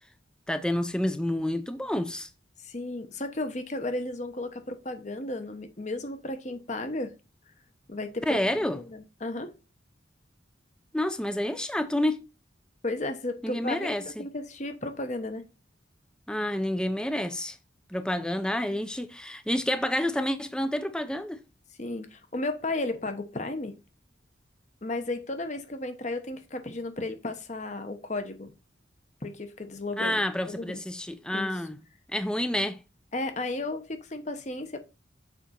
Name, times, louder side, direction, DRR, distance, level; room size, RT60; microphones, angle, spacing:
voice 1, 0.5-2.3 8.3-8.8 10.9-12.2 13.4-14.3 16.3-17.6 17.9-21.4 30.0-31.8 32.1-32.8, left 1 dB, 5° left, 0.5 m, -29 dB
voice 2, 2.6-7.1 7.9-9.5 12.8-15.4 21.8-23.7 24.8-28.5 29.2-30.2 30.5-30.8 31.3-31.5 33.1-34.8, left 2 dB, 40° left, 1.0 m, -34 dB
7.3 x 5.0 x 4.3 m
head